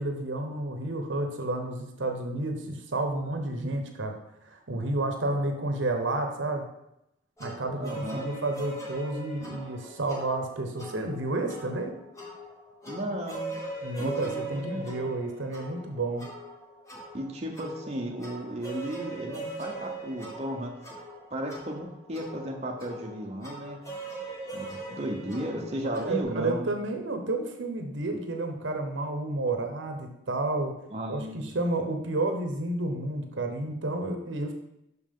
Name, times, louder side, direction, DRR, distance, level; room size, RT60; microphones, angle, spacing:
voice 1, 0.0-4.2 4.5-6.7 7.4-11.9 13.8-16.2 25.8-30.7 31.1-34.5, right 2 dB, 80° right, 4 dB, 0.9 m, -31 dB
voice 2, 3.0-3.4 5.3-5.5 7.7-8.2 12.8-13.5 14.0-15.0 17.1-20.7 21.3-23.8 24.5-26.7 30.9-31.5, right 1 dB, 35° right, 0 dB, 0.8 m, -35 dB
sound 1, 7.4-26.2, right 2 dB, 15° left, 1.3 m, -41 dB
6.2 x 5.3 x 3.7 m, 0.84 s
head